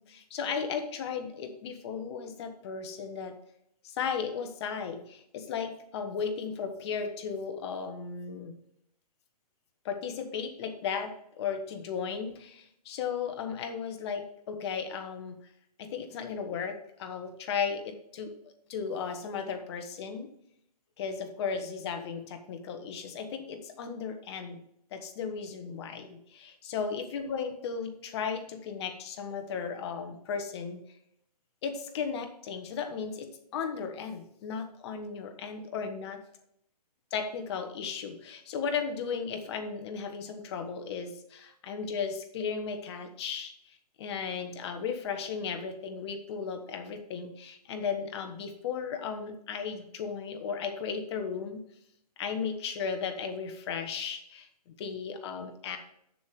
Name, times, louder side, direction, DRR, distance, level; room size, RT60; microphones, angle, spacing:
voice 1, 0.1-3.4 3.8-8.6 9.8-15.4 15.8-18.4 18.7-20.3 21.0-24.6 24.9-30.8 31.6-36.2 37.1-51.6 52.2-55.8, left 6 dB, 40° left, 6 dB, 1.4 m, -35 dB
7.7 x 6.9 x 4.9 m, 0.73 s
hypercardioid pair, 145°, 21 cm